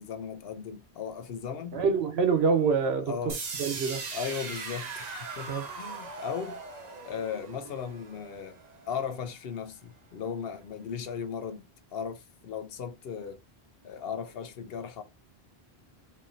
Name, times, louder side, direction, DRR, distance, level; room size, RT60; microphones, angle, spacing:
voice 1, 0.0-1.8 3.1-3.4 4.1-6.6 7.1-8.6 8.9-11.6 11.9-13.4 13.8-15.0, left 7 dB, 70° left, 0.9 m, -37 dB
voice 2, 1.7-3.3 3.6-4.0 5.5-5.6, right 5 dB, 80° right, 1.0 m, -26 dB
sound 1, 3.3-9.2, right 4 dB, 45° right, 0.8 m, -39 dB
4.3 x 2.8 x 2.6 m
omnidirectional pair, 1.1 m